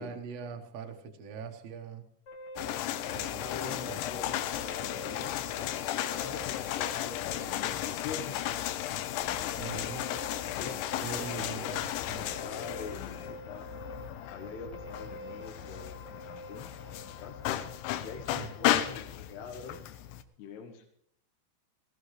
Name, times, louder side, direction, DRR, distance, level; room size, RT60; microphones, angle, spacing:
voice 1, 0.0-2.0 3.1-3.5 3.9-4.0 9.6-10.0 11.0-11.8 12.1-12.2 18.3-18.5, right 6 dB, 75° right, 4 dB, 1.4 m, -42 dB
sound 1, 2.3-19.3, equal, 40° left, 1.5 m, -48 dB
sound 2, 2.6-20.2, left 12 dB, 90° left, 3.1 m, -34 dB
voice 2, 3.4-5.7 6.0-8.7 9.2-9.9 10.6-11.8 12.2-13.2 13.5-13.7 14.3-17.4 18.0-19.8 20.4-20.9, left 5 dB, 70° left, 3 dB, 3.0 m, -44 dB
18.0 x 16.5 x 3.2 m, 0.67 s
omnidirectional pair, 5.1 m